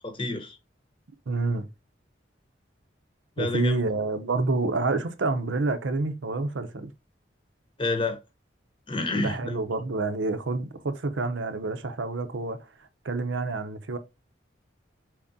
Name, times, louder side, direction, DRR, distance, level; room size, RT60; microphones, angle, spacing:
voice 1, 0.0-0.6 3.4-3.8 7.8-8.2 8.9-9.6, left 2 dB, 25° left, 0.8 m, -29 dB
voice 2, 1.3-1.7 3.4-6.9 9.2-12.6 13.0-14.0, right 3 dB, 85° right, 0.7 m, -28 dB
4.7 x 3.6 x 2.6 m
head